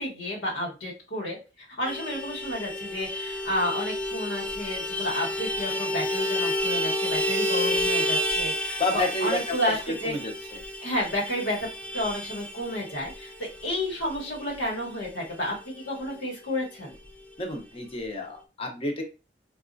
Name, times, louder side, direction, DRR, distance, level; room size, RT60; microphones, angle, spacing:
voice 1, 0.0-10.1 10.8-11.7 11.9-16.9, left 1 dB, 85° left, -3 dB, 1.2 m, -31 dB
Vehicle horn car horn honking, 1.9-15.8 16.0-16.2 16.5-16.6 16.9-17.6, left 1 dB, 10° left, 0.4 m, -30 dB
voice 2, 8.8-9.4 10.0-10.6 17.4-19.0, left 2 dB, 35° left, 2 dB, 0.8 m, -30 dB
4.1 x 2.4 x 2.5 m, 0.31 s
head